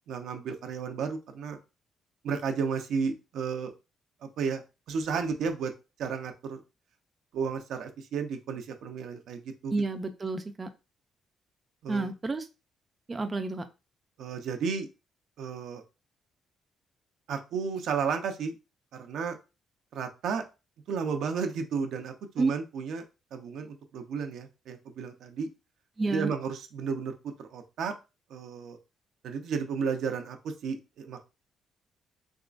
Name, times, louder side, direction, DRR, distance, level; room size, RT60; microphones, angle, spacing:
voice 1, 0.1-1.6 2.2-3.7 4.2-4.6 4.9-5.7 6.0-6.6 7.3-9.7 11.8-12.1 14.2-14.9 15.4-15.8 17.3-18.6 18.9-19.4 19.9-20.4 20.9-23.0 23.3-25.5 26.1-27.9 28.3-28.8 29.2-31.2, right 5 dB, 75° right, 5 dB, 0.6 m, -33 dB
voice 2, 9.7-10.7 11.9-12.5 13.1-13.7 22.4-22.5 26.0-26.3, right 3 dB, 25° right, 7 dB, 0.5 m, -30 dB
3.6 x 2.9 x 2.5 m, 0.28 s
cardioid pair, 90°, 0 cm